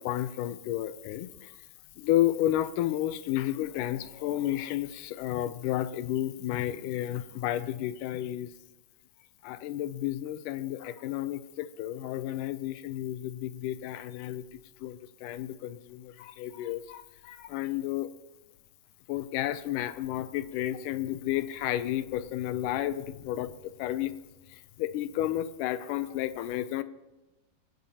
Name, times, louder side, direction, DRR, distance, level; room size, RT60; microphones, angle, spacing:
voice 1, 0.0-1.6 2.0-8.5 9.4-14.4 14.8-18.1 19.1-24.1 24.5-26.8, left 13 dB, 80° left, 13 dB, 2.1 m, -32 dB
24.0 x 10.5 x 2.8 m, 1.0 s
omnidirectional pair, 3.7 m